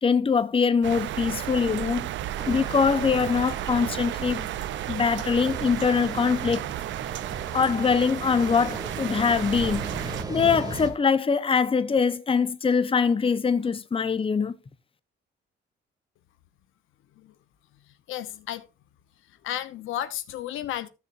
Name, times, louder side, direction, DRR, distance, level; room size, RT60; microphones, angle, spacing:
voice 1, 0.0-2.1 2.5-4.5 4.9-6.6 7.5-14.5, left 5 dB, 25° left, 0.8 m, -23 dB
sound 1, 0.8-10.2, right 13 dB, 70° right, 0.5 m, -33 dB
sound 2, 2.4-10.9, right 2 dB, 20° right, 2.4 m, -38 dB
voice 2, 18.1-18.7 19.4-20.9, left 12 dB, 85° left, 0.8 m, -33 dB
14.0 x 7.1 x 2.5 m
cardioid pair, 90°, 20 cm